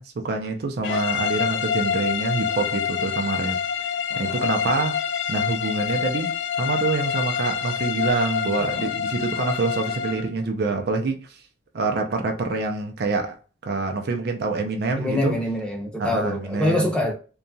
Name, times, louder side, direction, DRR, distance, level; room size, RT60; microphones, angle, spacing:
voice 1, 0.0-5.0 5.3-11.4 11.7-13.4 13.6-15.3 16.0-16.9, right 3 dB, 55° right, 0.4 m, -26 dB
sound 1, 0.8-10.3, left 8 dB, 75° left, 0.4 m, -26 dB
voice 2, 4.1-4.5 8.6-8.9 15.0-17.1, left 1 dB, 5° left, 0.6 m, -25 dB
2.8 x 2.3 x 2.6 m
head